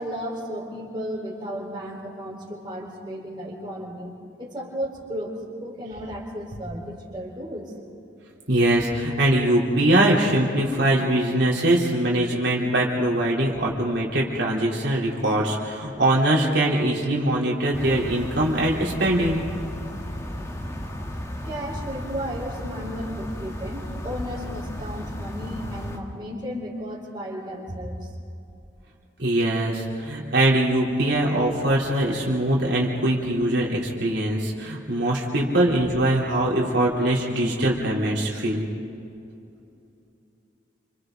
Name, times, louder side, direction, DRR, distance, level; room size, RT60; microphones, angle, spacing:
voice 1, 0.0-4.1 4.4-5.3 5.6-8.0 21.4-28.1, equal, 25° right, -3 dB, 4.4 m, -34 dB
voice 2, 8.5-19.4 29.2-38.7, right 1 dB, 75° right, -4 dB, 3.7 m, -22 dB
sound 1, 17.7-26.0, equal, 15° left, 1.6 m, -34 dB
28.5 x 27.0 x 4.0 m, 2.7 s
head